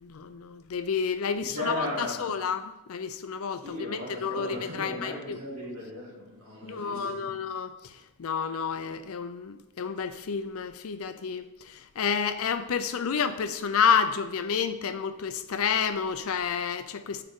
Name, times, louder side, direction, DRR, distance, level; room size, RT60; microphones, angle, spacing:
voice 1, 0.0-2.6 2.9-5.4 6.6-7.7 8.2-11.4 12.0-17.2, left 6 dB, 70° left, 0.5 m, -29 dB
voice 2, 1.3-2.3 3.5-7.3, left 1 dB, 75° right, 1.8 m, -36 dB
7.6 x 4.8 x 3.6 m
head